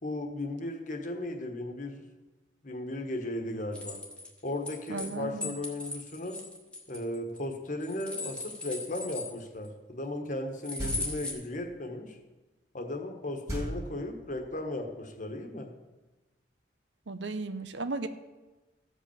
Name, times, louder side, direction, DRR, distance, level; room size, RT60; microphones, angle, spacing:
voice 1, 0.0-2.0 2.6-4.0 4.4-6.4 6.9-12.2 12.7-15.7, left 1 dB, 40° left, 3 dB, 1.3 m, -36 dB
sound 1, 3.7-5.1 5.4-7.4 7.8-9.7 10.6-11.3, left 2 dB, 5° left, 1.4 m, -38 dB
voice 2, 4.9-5.6 17.1-18.1, right 3 dB, 70° right, 11 dB, 0.7 m, -35 dB
sound 2, 10.8-11.4 13.5-14.5, equal, 15° right, 2.5 m, -37 dB
14.5 x 5.3 x 7.1 m, 1.2 s
head